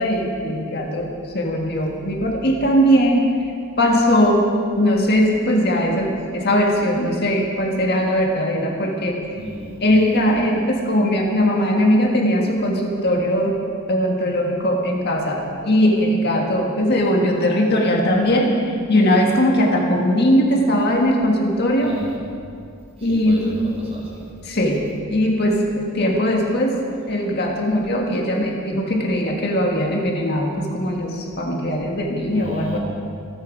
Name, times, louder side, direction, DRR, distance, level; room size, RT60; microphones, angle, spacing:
voice 1, 0.0-3.3 3.8-9.2 9.8-13.6 13.9-22.0 23.0-23.5 24.4-24.8 25.1-26.8 27.1-32.8, equal, 50° left, 0 dB, 1.7 m, -19 dB
voice 2, 9.3-9.7 21.8-22.1 23.0-24.2 32.3-32.8, equal, 30° right, -4 dB, 4.8 m, -33 dB
27.0 x 9.2 x 4.9 m, 2.4 s
head